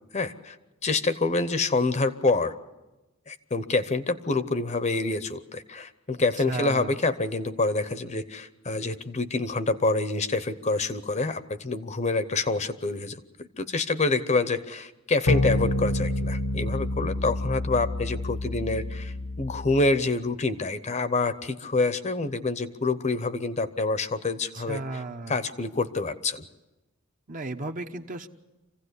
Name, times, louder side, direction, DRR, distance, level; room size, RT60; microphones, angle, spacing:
voice 1, 0.1-0.6 0.8-2.5 3.3-26.5, left 3 dB, 30° left, 12 dB, 0.8 m, -27 dB
voice 2, 6.5-6.9 24.7-25.3 27.3-28.3, right 2 dB, 40° right, 5 dB, 1.0 m, -34 dB
sound 1, 15.3-20.0, left 1 dB, 85° left, 1.3 m, -28 dB
26.0 x 16.0 x 8.2 m, 1.1 s
head